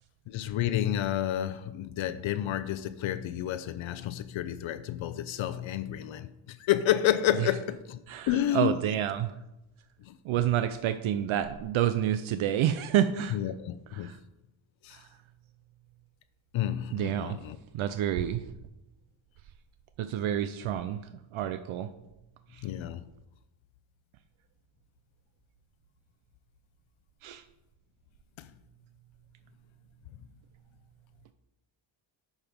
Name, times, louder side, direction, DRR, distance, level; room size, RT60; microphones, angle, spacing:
voice 1, 0.3-8.0 8.3-8.7 10.1-10.2 13.3-14.1 14.8-15.0 16.5-17.6 22.6-23.0 28.4-28.5, left 11 dB, 70° left, 0.6 m, -30 dB
voice 2, 8.1-9.4 10.2-13.4 13.9-14.2 14.9-15.1 16.9-17.4 17.7-18.4 20.0-21.9 22.5-22.7 27.2-27.4, right 11 dB, 75° right, 0.6 m, -29 dB
9.0 x 5.7 x 5.1 m
cardioid pair, 115°, 49 cm